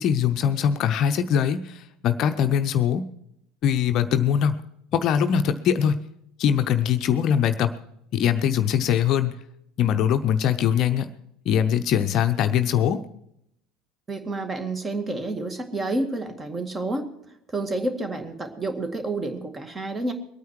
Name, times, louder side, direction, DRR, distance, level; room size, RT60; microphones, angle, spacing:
voice 1, 0.0-3.0 3.6-4.6 4.9-6.0 6.4-7.7 8.1-9.4 9.8-11.1 11.5-13.0, left 8 dB, 45° left, 9 dB, 0.7 m, -22 dB
voice 2, 14.1-17.1 17.5-20.1, right 2 dB, 20° right, 7 dB, 2.0 m, -29 dB
22.0 x 9.3 x 4.6 m, 0.77 s
figure-of-eight pair, 65°, 0 cm